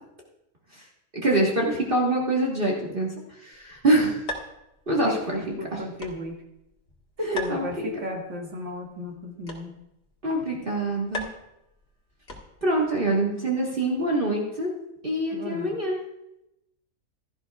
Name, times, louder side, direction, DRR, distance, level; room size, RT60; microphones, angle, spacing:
voice 1, 1.1-3.1 3.4-4.2 4.9-5.4 7.3-7.9 10.2-11.3 12.6-14.7 15.0-16.0, right 1 dB, 40° right, -2 dB, 1.7 m, -25 dB
sound 1, 3.5-12.8, left 1 dB, 50° left, 1.8 m, -42 dB
voice 2, 5.0-6.4 7.2-9.8 15.3-15.8, left 1 dB, 60° right, 0 dB, 2.3 m, -34 dB
16.0 x 12.5 x 2.3 m, 0.86 s
omnidirectional pair, 1.4 m